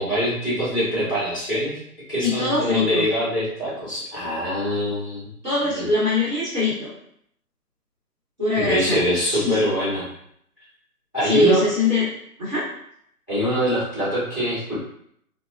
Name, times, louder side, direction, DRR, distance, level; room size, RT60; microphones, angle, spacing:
voice 1, 0.0-1.8 2.1-5.2 5.7-5.9 8.5-10.1 11.1-11.6 13.3-14.8, equal, 15° left, -11 dB, 0.7 m, -24 dB
voice 2, 2.2-3.0 5.4-6.9 8.4-9.0 9.3-9.6 11.2-12.1 12.4-12.6, left 2 dB, 30° right, -12 dB, 0.9 m, -22 dB
2.6 x 2.0 x 2.3 m, 0.69 s
figure-of-eight pair, 155°, 46 cm